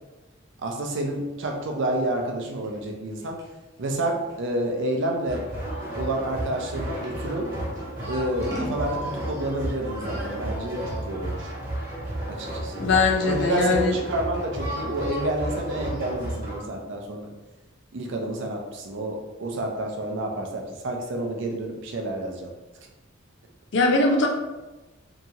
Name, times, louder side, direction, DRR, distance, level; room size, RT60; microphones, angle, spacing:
voice 1, 0.6-3.4 3.8-5.4 6.0-7.5 8.1-11.5 12.3-12.8 13.2-17.3 17.9-22.5, right 1 dB, 65° right, 2 dB, 0.5 m, -29 dB
Scissors, 1.0-7.2 7.7-8.9, equal, 20° right, 0.6 m, -41 dB
sound 1, 5.3-16.6, right 1 dB, 45° right, 1.0 m, -32 dB
voice 2, 12.7-14.0 23.7-24.3, left 3 dB, 60° left, 2 dB, 0.5 m, -21 dB
2.8 x 2.3 x 2.7 m, 1.1 s
head